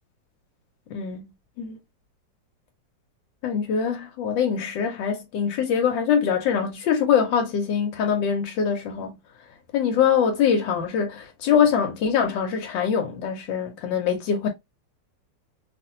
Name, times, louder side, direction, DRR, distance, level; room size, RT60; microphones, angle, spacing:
voice 1, 0.9-1.2 1.6-1.8 3.4-9.1 9.7-14.5, left 7 dB, 85° left, 1.3 m, -23 dB
2.9 x 2.5 x 2.6 m
omnidirectional pair, 2.0 m